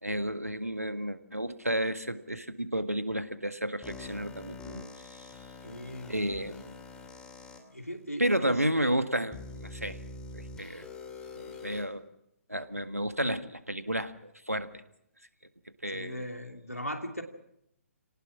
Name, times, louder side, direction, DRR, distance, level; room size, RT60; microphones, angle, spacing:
voice 1, 0.0-5.3 6.1-6.8 8.2-10.0 10.3-10.9 11.3-12.0 12.5-14.8 15.8-16.3, right 1 dB, 90° right, 10 dB, 1.7 m, -32 dB
sound 1, 3.8-7.6 8.3-8.4 9.3-11.8, left 3 dB, 10° left, 2.7 m, -45 dB
voice 2, 5.6-6.1 7.7-8.5 15.9-17.2, equal, 90° left, 4 dB, 2.7 m, -38 dB
29.0 x 18.5 x 6.2 m, 0.78 s
figure-of-eight pair, 130°, 8 cm